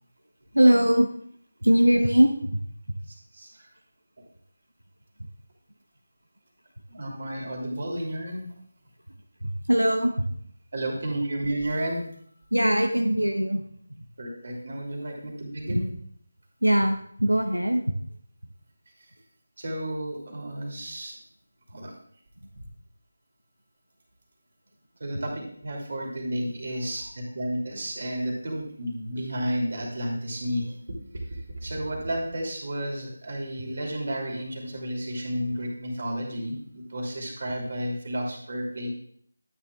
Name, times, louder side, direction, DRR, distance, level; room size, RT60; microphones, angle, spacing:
voice 1, 0.5-1.1 1.6-2.5 9.4-10.1 12.5-13.6 15.7-15.8 16.6-17.8, equal, 80° right, 4 dB, 0.9 m, -21 dB
voice 2, 3.1-3.7 6.9-8.5 10.7-12.1 14.2-15.9 19.6-21.1 21.7-21.9 25.0-30.7 31.3-38.9, right 1 dB, 45° right, -1 dB, 2.8 m, -32 dB
12.5 x 9.1 x 2.4 m, 0.63 s
figure-of-eight pair, 160°, 0 cm